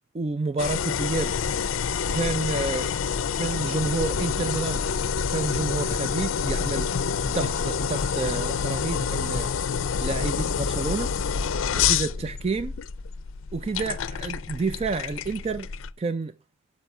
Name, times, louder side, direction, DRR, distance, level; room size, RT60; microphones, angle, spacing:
voice 1, 0.1-1.4 2.1-2.9 3.3-4.8 5.3-6.9 7.3-9.5 10.0-11.1 11.7-12.7 13.5-15.7 16.0-16.3, right 3 dB, 30° right, 0.3 m, -29 dB
sound 1, 0.6-15.9, left 6 dB, 80° left, 0.4 m, -27 dB
sound 2, 2.7-3.5 3.9-5.0 5.3-6.2 6.6-8.4 8.6-9.5, left 3 dB, 25° left, 0.5 m, -42 dB
6.6 x 5.3 x 5.9 m
head